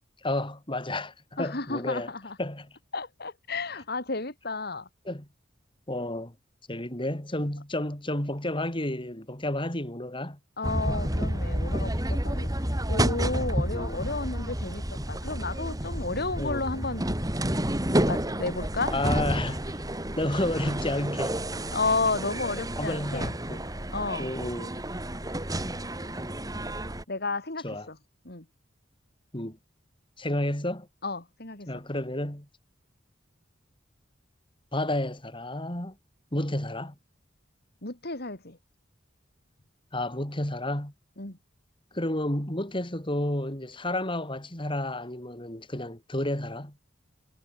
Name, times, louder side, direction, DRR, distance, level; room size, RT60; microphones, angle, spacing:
voice 1, 0.2-2.1 2.4-2.7 5.1-5.3 5.9-6.3 6.7-10.4 13.7-14.0 16.4-16.6 18.9-19.8 20.2-21.4 22.8-23.6 24.2-24.8 27.6-27.9 29.3-29.6 30.2-30.9 31.7-32.5 34.7-36.0 36.3-36.9 39.9-40.9 41.9-46.7, left 1 dB, 25° left, 4.3 m, -31 dB
voice 2, 1.4-2.4 2.9-4.9 10.6-12.5 12.9-17.2 18.1-18.9 21.7-23.4 23.9-24.3 27.1-28.0 28.3-28.5 31.0-31.8 37.8-38.6 41.2-41.4, left 3 dB, 55° left, 3.6 m, -32 dB
sound 1, 10.6-27.0, right 1 dB, 20° right, 4.3 m, -30 dB
head